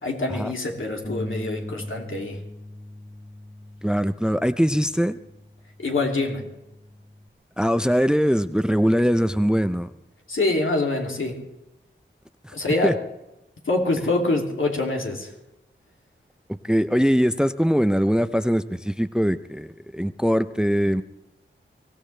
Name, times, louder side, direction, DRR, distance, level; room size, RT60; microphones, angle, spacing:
voice 1, 0.0-2.4 5.8-6.4 10.3-11.4 12.5-12.9 13.6-15.3, left 2 dB, 80° left, 0 dB, 2.8 m, -25 dB
Bass guitar, 1.0-7.3, left 1 dB, 30° left, 1.3 m, -40 dB
voice 2, 3.8-5.2 7.6-9.9 12.4-12.5 12.8-12.9 16.5-21.0, equal, 5° right, 12 dB, 0.6 m, -22 dB
24.0 x 16.0 x 3.3 m, 0.94 s
wide cardioid pair, 60°, 20 cm